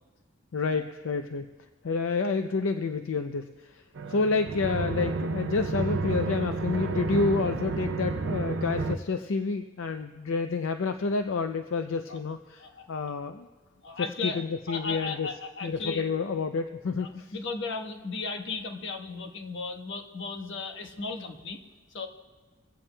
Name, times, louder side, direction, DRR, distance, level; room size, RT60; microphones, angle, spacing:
voice 1, 0.5-1.5 1.8-3.8 4.1-13.5 14.0-15.3 15.6-17.3, left 4 dB, 75° left, 7 dB, 0.5 m, -29 dB
sound 1, 4.0-9.0, right 3 dB, 65° right, 0.6 m, -31 dB
voice 2, 13.8-16.0 17.0-21.6 21.9-22.1, left 4 dB, 60° left, 4 dB, 1.2 m, -36 dB
23.5 x 16.0 x 2.2 m, 1.3 s
head